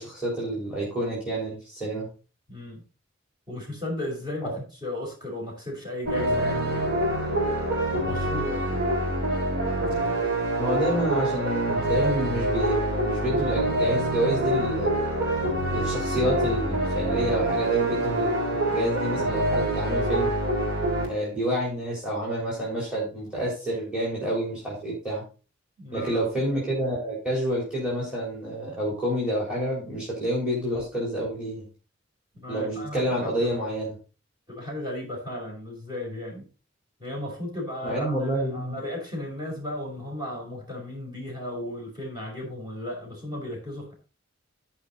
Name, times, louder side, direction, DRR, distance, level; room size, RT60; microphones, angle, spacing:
voice 1, 0.0-2.1 4.4-4.5 10.6-15.0 15.7-18.4 18.7-20.3 21.0-25.2 25.9-31.6 32.5-34.0 37.8-38.8, right 1 dB, 5° right, -5 dB, 3.8 m, -28 dB
voice 2, 2.5-2.8 3.5-4.5 4.8-7.6 8.0-8.6 25.8-26.3 32.3-33.5 34.5-36.5 37.0-43.9, left 1 dB, 25° right, -2 dB, 4.8 m, -35 dB
sound 1, 6.0-21.0, right 1 dB, 55° right, 3.9 m, -26 dB
14.0 x 5.3 x 4.0 m, 0.35 s
head